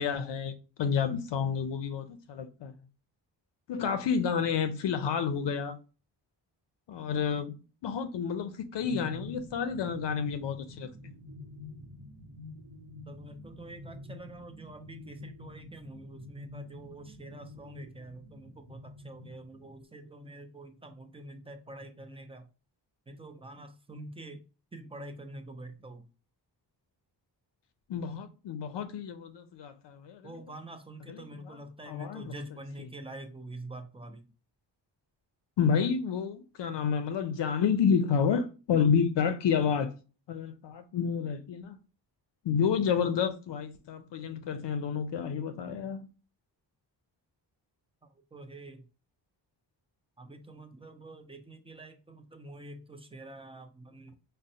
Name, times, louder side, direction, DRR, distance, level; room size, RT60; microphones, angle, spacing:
voice 1, 0.0-2.7 3.7-5.8 6.9-11.1 27.9-30.2 31.9-32.2 35.6-39.9 40.3-41.8 42.4-46.1, left 6 dB, 75° left, 0.5 m, -30 dB
sound 1, 8.8-19.8, left 1 dB, 85° right, 0.7 m, -47 dB
voice 2, 13.1-22.5 23.1-24.4 24.7-26.1 30.2-34.3 48.0-48.9 50.2-54.1, right 1 dB, 15° right, 0.4 m, -46 dB
5.0 x 2.1 x 2.7 m
wide cardioid pair, 125°, 43 cm